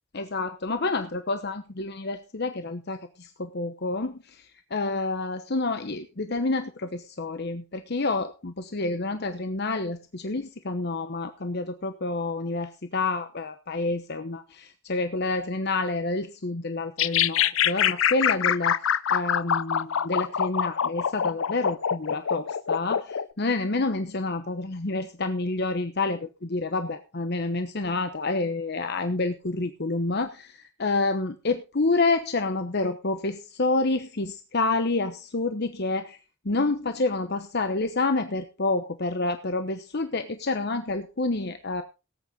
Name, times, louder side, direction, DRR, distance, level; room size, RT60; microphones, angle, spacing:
voice 1, 0.1-18.8 19.1-36.2 36.4-41.8, left 3 dB, 55° left, 8 dB, 1.0 m, -28 dB
sound 1, 17.0-23.3, left 8 dB, 80° left, 0.6 m, -24 dB
18.0 x 8.9 x 3.9 m, 0.30 s
head